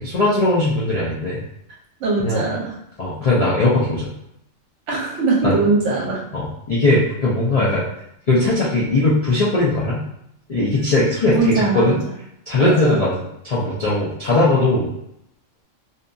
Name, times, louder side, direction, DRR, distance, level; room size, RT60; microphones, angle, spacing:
voice 1, 0.0-1.4 2.2-2.4 3.0-4.1 5.4-5.6 6.3-7.8 8.3-10.0 10.5-12.0 12.5-14.9, left 2 dB, 55° left, -7 dB, 0.4 m, -19 dB
voice 2, 2.0-2.8 4.9-6.2 11.3-12.0 12.6-13.0, right 3 dB, 70° right, -2 dB, 0.9 m, -21 dB
2.7 x 2.6 x 2.3 m, 0.79 s
omnidirectional pair, 1.3 m